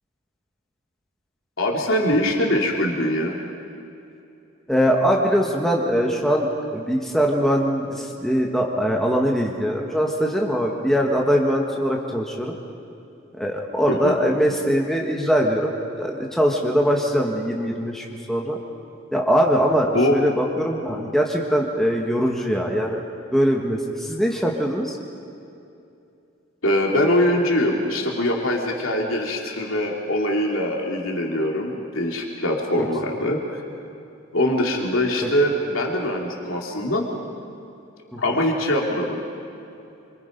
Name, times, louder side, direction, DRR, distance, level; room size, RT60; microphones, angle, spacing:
voice 1, 1.6-3.4 13.9-14.2 19.9-20.2 26.6-33.6 34.3-37.0 38.2-39.2, left 1 dB, 85° left, -1 dB, 3.2 m, -22 dB
voice 2, 4.7-12.5 13.4-15.7 16.0-18.6 19.1-23.0 23.3-25.0 38.1-38.2, equal, ahead, -1 dB, 1.6 m, -22 dB
27.0 x 25.5 x 5.3 m, 2.7 s
head